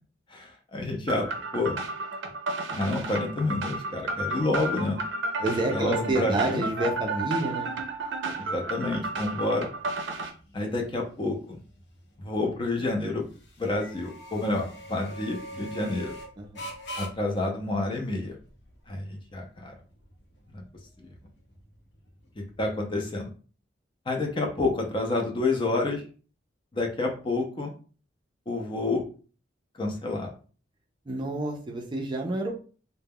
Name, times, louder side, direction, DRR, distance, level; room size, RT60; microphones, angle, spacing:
voice 1, 0.3-1.3 1.5-1.8 2.7-5.0 5.7-6.7 8.4-9.7 10.5-11.6 12.2-13.3 13.6-16.1 17.0-18.3 18.9-19.7 20.5-20.6 21.0-21.1 22.4-23.3 24.1-26.0 26.7-27.7 28.5-29.0 29.8-30.3, left 2 dB, 30° left, 2 dB, 0.5 m, -29 dB
sound 1, 1.1-10.3, right 3 dB, 90° right, 0.5 m, -32 dB
voice 2, 5.4-7.7 16.4-16.7 31.1-32.6, right 1 dB, 25° right, 1 dB, 0.4 m, -29 dB
sound 2, 7.7-23.0, equal, 65° left, 0.7 m, -46 dB
2.2 x 2.1 x 3.4 m, 0.39 s
head